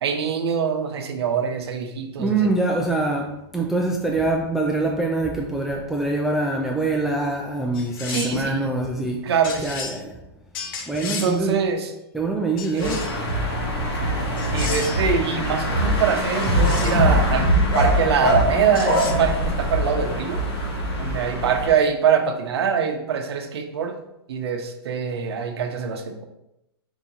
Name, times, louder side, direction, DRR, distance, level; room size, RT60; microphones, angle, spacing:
voice 1, 0.0-2.5 8.1-8.7 9.2-9.8 11.0-11.9 12.7-13.1 14.5-17.5 17.7-20.4 21.0-24.0 24.3-26.3, right 7 dB, 80° right, 5 dB, 0.7 m, -24 dB
voice 2, 2.2-9.3 9.6-10.2 10.9-11.6 12.1-13.0, right 2 dB, ahead, -1 dB, 0.3 m, -24 dB
sound 1, 7.7-8.5 9.4-10.0 10.5-11.4 12.6-13.2 14.4-15.1 16.4-17.0 18.8-19.1, left 5 dB, 55° left, 0.9 m, -33 dB
sound 2, 12.8-21.7, equal, 85° left, 1.7 m, -22 dB
4.8 x 2.8 x 3.9 m, 0.87 s
hypercardioid pair, 145°, 13 cm